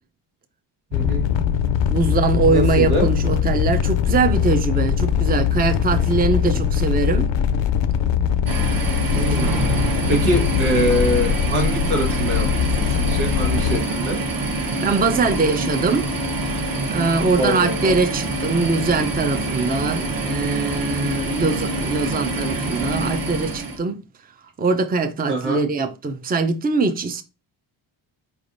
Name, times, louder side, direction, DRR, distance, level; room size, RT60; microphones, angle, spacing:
sound 1, 0.9-13.8, left 8 dB, 65° left, 0.5 m, -21 dB
voice 1, 0.9-1.3 2.5-3.1 9.1-9.6 10.1-14.2 17.4-18.0 25.3-25.7, equal, 90° right, 1.5 m, -24 dB
voice 2, 1.9-7.3 14.8-16.1 16.9-24.0 24.6-27.2, right 4 dB, 20° right, 0.5 m, -22 dB
sound 2, 8.5-23.8, right 2 dB, 45° right, 1.0 m, -25 dB
4.3 x 3.3 x 2.6 m
cardioid pair, 70°, 48 cm